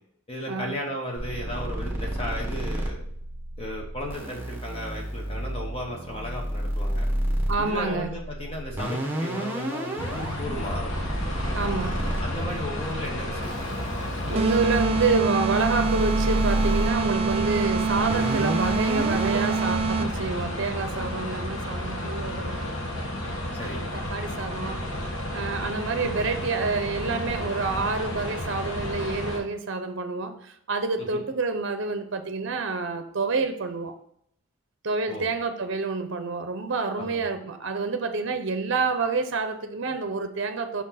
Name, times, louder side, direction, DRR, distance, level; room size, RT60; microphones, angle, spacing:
voice 1, 0.3-3.0 3.6-7.0 7.6-10.9 12.2-13.7 23.5-23.8 31.0-31.2 35.1-35.3 37.0-37.2, equal, 25° left, 0.9 m, -35 dB
sound 1, 1.2-19.7, equal, 10° right, 1.1 m, -31 dB
voice 2, 7.5-8.1 11.5-12.1 14.2-22.7 23.9-24.9 25.3-33.9 34.8-40.8, right 4 dB, 55° right, 0.7 m, -28 dB
sound 2, 10.0-29.4, left 1 dB, 60° left, 1.3 m, -32 dB
sound 3, 14.3-20.3, right 5 dB, 25° right, 0.3 m, -26 dB
5.7 x 4.3 x 5.7 m
head